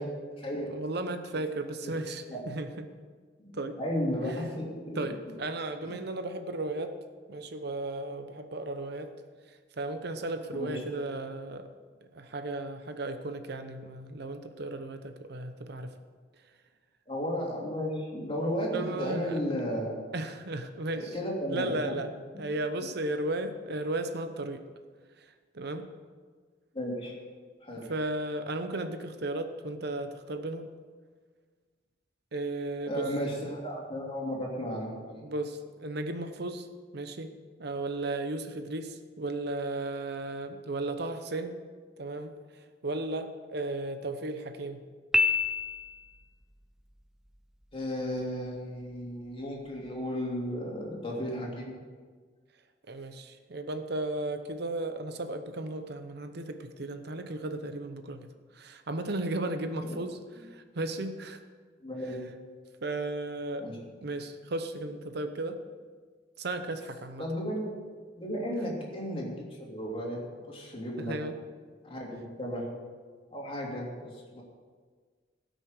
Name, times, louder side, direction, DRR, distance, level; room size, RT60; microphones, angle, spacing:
voice 1, 0.0-0.7 2.3-2.4 3.4-5.1 5.8-5.9 10.5-10.8 17.1-19.9 21.0-22.0 22.3-22.4 26.7-27.1 27.6-27.9 32.9-35.2 47.7-51.7 59.7-59.9 61.8-62.2 63.6-63.8 67.2-67.7 68.2-70.2 70.5-71.1 71.8-72.7 73.3-74.4, equal, 30° left, -2 dB, 3.0 m, -34 dB
voice 2, 0.7-2.9 3.5-3.8 4.3-4.4 4.9-6.9 7.3-9.1 9.5-11.7 12.1-15.9 18.7-19.4 20.1-21.2 21.5-24.6 25.2-25.9 27.9-30.7 32.3-33.1 35.2-36.7 36.9-37.3 37.6-41.6 42.0-42.3 42.8-44.8 52.9-60.2 60.5-61.4 62.8-63.7 64.0-65.6 66.4-67.2 71.0-71.3, right 2 dB, 60° right, 8 dB, 0.8 m, -35 dB
Piano, 45.1-46.2, left 3 dB, 5° right, 0.6 m, -27 dB
17.0 x 6.4 x 6.5 m, 1.5 s
head